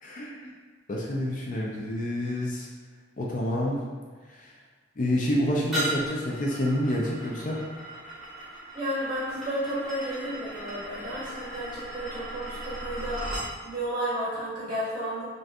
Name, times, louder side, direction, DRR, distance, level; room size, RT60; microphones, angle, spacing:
voice 1, 0.0-0.5 0.9-2.7 3.2-3.8 4.3-4.5 5.0-7.6, left 1 dB, 45° left, -3 dB, 0.4 m, -28 dB
sound 1, 5.7-13.5, right 1 dB, ahead, 1.0 m, -37 dB
voice 2, 8.7-15.3, right 1 dB, 30° right, -9 dB, 0.7 m, -32 dB
3.6 x 2.6 x 2.4 m, 1.4 s
head